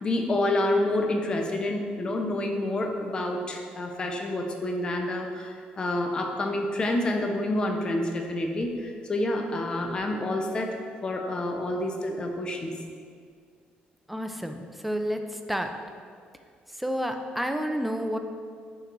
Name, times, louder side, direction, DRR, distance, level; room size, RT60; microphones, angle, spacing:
voice 1, 0.0-12.7, left 1 dB, 30° left, 3 dB, 0.9 m, -28 dB
voice 2, 14.1-15.2 15.5-15.7 16.8-18.2, equal, 5° right, 5 dB, 0.6 m, -29 dB
11.0 x 4.7 x 4.0 m, 2.1 s
cardioid pair, 125°, 3 cm